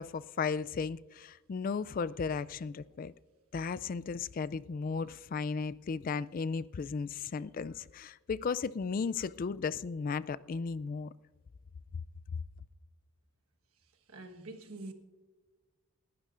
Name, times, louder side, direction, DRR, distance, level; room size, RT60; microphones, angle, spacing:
voice 1, 0.0-3.1 3.5-11.1, left 5 dB, 40° left, 0.3 m, -35 dB
voice 2, 14.1-14.9, right 2 dB, 85° right, 1.3 m, -45 dB
29.5 x 12.0 x 2.5 m
head